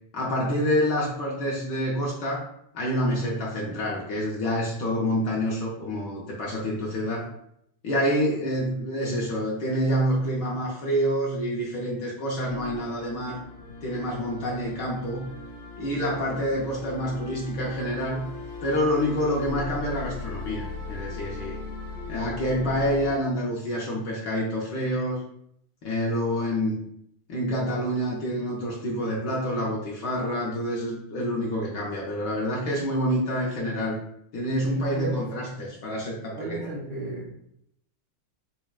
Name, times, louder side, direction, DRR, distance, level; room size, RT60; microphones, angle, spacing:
voice 1, 0.1-2.5 2.7-7.3 7.8-13.4 13.8-15.2 15.8-18.3 18.6-21.6 22.1-25.2 25.8-26.8 27.3-34.0 34.3-36.8, equal, 70° left, -3 dB, 1.1 m, -27 dB
sound 1, 12.5-23.1, left 3 dB, 85° left, 1.9 m, -39 dB
voice 2, 34.7-35.2 36.3-37.3, right 2 dB, 75° right, -3 dB, 1.0 m, -35 dB
5.7 x 2.1 x 2.3 m, 0.72 s
omnidirectional pair, 2.4 m